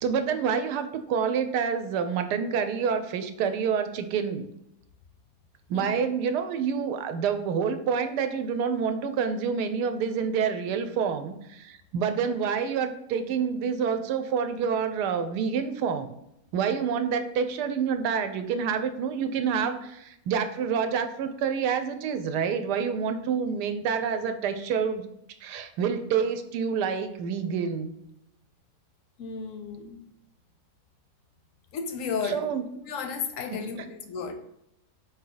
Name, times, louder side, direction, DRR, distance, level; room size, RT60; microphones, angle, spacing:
voice 1, 0.0-4.5 5.7-16.1 16.5-25.1 25.4-27.9 32.2-32.7 33.5-33.6, right 6 dB, 85° right, 9 dB, 1.2 m, -28 dB
voice 2, 5.7-6.1 29.2-30.0 31.7-32.5 32.9-34.3, left 5 dB, 70° left, 7 dB, 0.8 m, -33 dB
4.9 x 2.8 x 3.8 m, 0.80 s
omnidirectional pair, 1.7 m